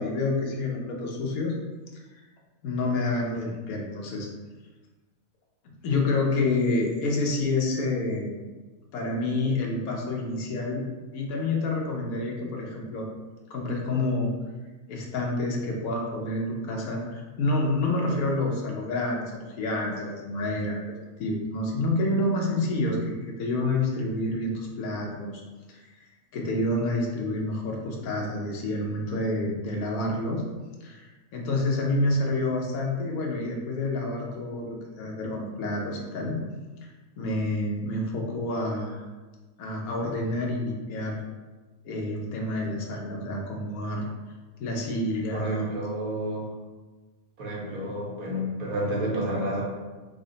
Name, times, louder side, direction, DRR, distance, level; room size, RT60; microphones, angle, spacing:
voice 1, 0.0-1.5 2.6-4.3 5.8-8.4 8.9-10.9 11.1-13.1 13.5-14.3 14.9-20.9 21.2-25.4 25.7-25.8 26.3-30.4 30.8-36.4 37.2-39.0 39.6-41.2 41.8-44.0 44.6-45.6 47.8-47.9, left 2 dB, 85° left, -1 dB, 1.2 m, -28 dB
voice 2, 45.3-46.5 47.4-49.6, right 1 dB, 85° right, -3 dB, 1.3 m, -30 dB
3.7 x 2.1 x 3.8 m, 1.3 s
omnidirectional pair, 1.5 m